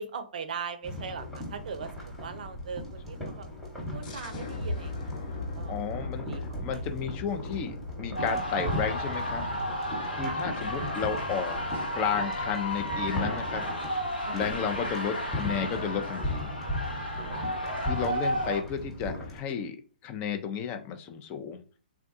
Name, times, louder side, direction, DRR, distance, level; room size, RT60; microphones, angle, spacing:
voice 1, 0.0-3.5 3.9-5.7 6.2-6.4 6.7-6.8 10.2-10.4 14.2-14.6, right 6 dB, 55° right, 9 dB, 0.6 m, -40 dB
sound 1, 0.8-19.4, left 1 dB, ahead, 1.2 m, -38 dB
sound 2, 4.0-9.5, left 2 dB, 50° left, 0.8 m, -38 dB
voice 2, 5.7-9.5 10.1-11.6 11.9-13.6 14.3-16.5 17.8-19.8 20.0-21.6, left 7 dB, 25° left, 6 dB, 0.5 m, -32 dB
sound 3, 8.1-18.6, equal, 85° left, 1.0 m, -33 dB
3.6 x 2.3 x 2.6 m, 0.38 s
figure-of-eight pair, 125°, 5 cm